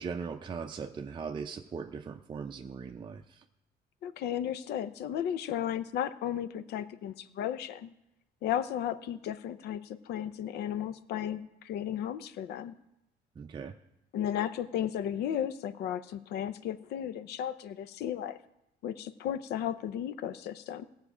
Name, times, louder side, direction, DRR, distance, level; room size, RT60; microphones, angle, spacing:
voice 1, 0.0-3.4 13.4-13.8, right 5 dB, 30° right, 5 dB, 0.5 m, -39 dB
voice 2, 4.0-7.9 8.4-12.7 14.1-18.4 18.8-20.9, left 10 dB, 75° left, 13 dB, 0.7 m, -34 dB
16.5 x 7.4 x 5.0 m, 0.88 s
cardioid pair, 110°, 17 cm